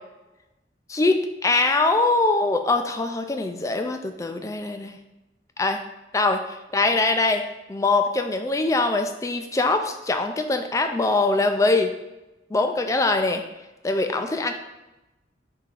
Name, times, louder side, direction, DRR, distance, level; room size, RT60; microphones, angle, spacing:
voice 1, 0.9-5.0 5.6-5.8 6.1-7.4 7.7-11.9 12.5-13.4 13.8-14.5, left 3 dB, 20° left, 6 dB, 0.3 m, -23 dB
3.7 x 3.0 x 4.3 m, 1.0 s
head